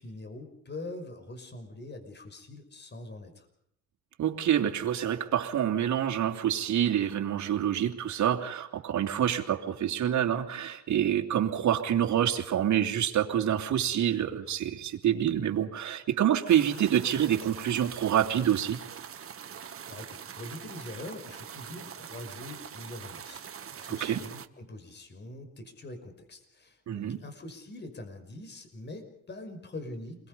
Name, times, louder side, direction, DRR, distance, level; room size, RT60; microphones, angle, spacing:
voice 1, 0.0-3.5 19.9-30.3, left 2 dB, 35° left, 7 dB, 5.6 m, -43 dB
voice 2, 4.2-18.8 23.9-24.2 26.9-27.2, right 10 dB, 70° right, 3 dB, 2.9 m, -27 dB
sound 1, 16.5-24.5, right 8 dB, 45° right, 1.6 m, -44 dB
29.0 x 22.0 x 5.5 m, 0.73 s
cardioid pair, 90°, 30 cm